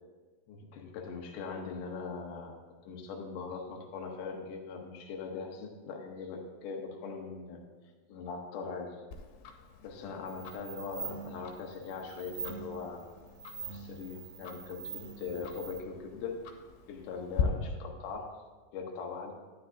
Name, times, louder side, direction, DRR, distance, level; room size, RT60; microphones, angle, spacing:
voice 1, 0.5-2.5 2.9-7.6 8.1-9.0 9.8-13.0 13.7-16.4 16.9-18.4 18.7-19.3, left 5 dB, 70° left, 0 dB, 2.1 m, -41 dB
Tick-tock, 9.1-17.4, left 9 dB, 85° left, 2.8 m, -43 dB
sound 1, 10.3-15.8, right 6 dB, 65° right, 2.7 m, -44 dB
12.0 x 9.8 x 2.6 m, 1.3 s
omnidirectional pair, 4.5 m